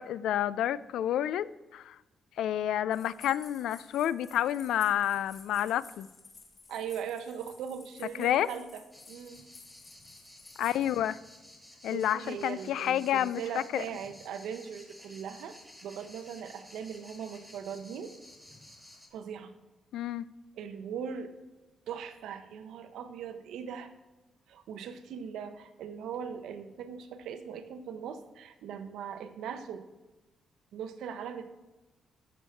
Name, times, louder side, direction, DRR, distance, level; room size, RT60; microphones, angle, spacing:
voice 1, 0.0-2.0 2.4-6.1 8.2-8.5 10.6-11.2 11.8-13.4 13.7-13.8 19.9-20.2, left 11 dB, 80° left, 0.3 m, -29 dB
sound 1, 2.9-10.9, left 3 dB, 35° left, 1.7 m, -54 dB
voice 2, 6.7-8.8 9.1-9.5 11.9-18.1 19.1-19.5 20.6-21.3 21.9-23.9 24.5-29.9 30.7-31.5, right 7 dB, 90° right, 0.8 m, -40 dB
sound 2, 8.9-19.1, left 1 dB, 5° left, 1.7 m, -54 dB
13.5 x 6.5 x 4.4 m
cardioid pair, 175°, 0 cm